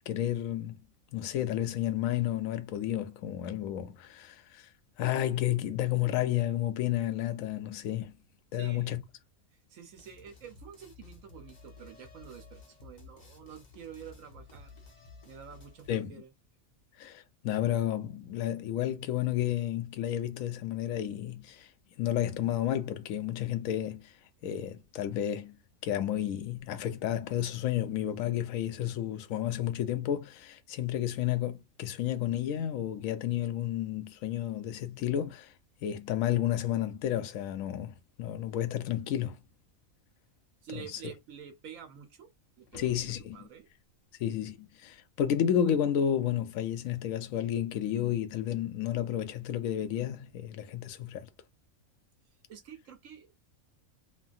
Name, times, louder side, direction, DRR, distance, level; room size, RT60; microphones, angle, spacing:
voice 1, 0.1-0.8 1.1-4.7 5.0-8.1 8.5-9.0 15.9-16.2 17.0-21.7 22.0-24.1 24.4-25.6 25.8-35.5 35.8-39.4 40.7-41.0 42.8-43.4 44.2-51.3, left 11 dB, 75° left, 1.0 m, -31 dB
voice 2, 8.5-9.0 9.7-16.3 40.6-42.3 42.6-43.0 43.3-43.7 52.5-53.4, right 8 dB, 75° right, 1.1 m, -48 dB
sound 1, 10.0-15.9, left 4 dB, 35° left, 1.0 m, -53 dB
sound 2, 42.6-43.9 48.7-48.8, left 5 dB, 55° left, 0.7 m, -53 dB
3.2 x 2.2 x 2.4 m
omnidirectional pair, 1.4 m